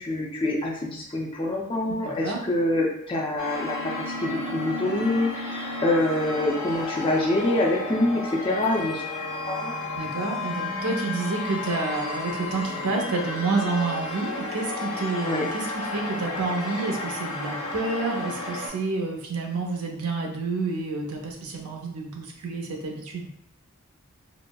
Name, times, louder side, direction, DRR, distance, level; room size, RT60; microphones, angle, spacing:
voice 1, 0.0-3.9 4.2-9.8 15.2-15.5, left 1 dB, 25° left, -2 dB, 0.5 m, -26 dB
voice 2, 2.0-2.4 10.0-23.3, right 3 dB, 85° right, 1 dB, 0.6 m, -29 dB
sound 1, 3.4-18.7, left 2 dB, 55° left, 0.9 m, -33 dB
3.9 x 2.0 x 2.2 m, 0.73 s
head